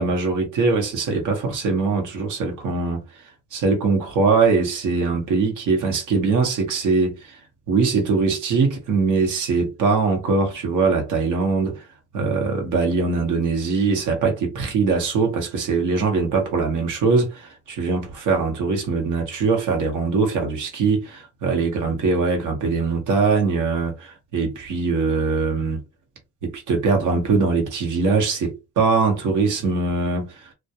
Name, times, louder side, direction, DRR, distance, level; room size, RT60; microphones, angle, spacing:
voice 1, 0.0-3.2 3.5-7.4 7.7-11.8 12.1-25.8 26.4-30.5, right 4 dB, 80° right, 0.9 m, -22 dB
2.2 x 2.2 x 2.7 m
cardioid pair, 90°, 30 cm